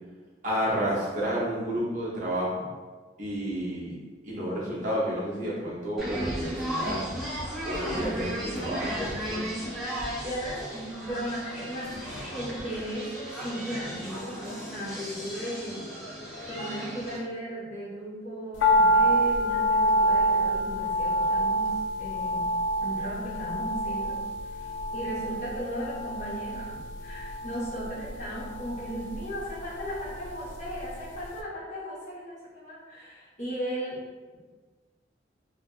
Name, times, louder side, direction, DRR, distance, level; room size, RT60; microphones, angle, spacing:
voice 1, 0.4-2.6 3.2-3.9 4.2-7.0 7.6-9.5, equal, 40° right, -6 dB, 0.6 m, -30 dB
sound 1, 6.0-17.2, equal, ahead, 0.5 m, -35 dB
voice 2, 10.2-15.8 16.5-21.7 22.0-22.5 22.8-24.2 24.4-34.0, equal, 40° left, -9 dB, 0.9 m, -36 dB
sound 2, 18.6-30.9 31.1-31.2, equal, 85° left, 0.3 m, -27 dB
2.6 x 2.4 x 2.3 m, 1.4 s
head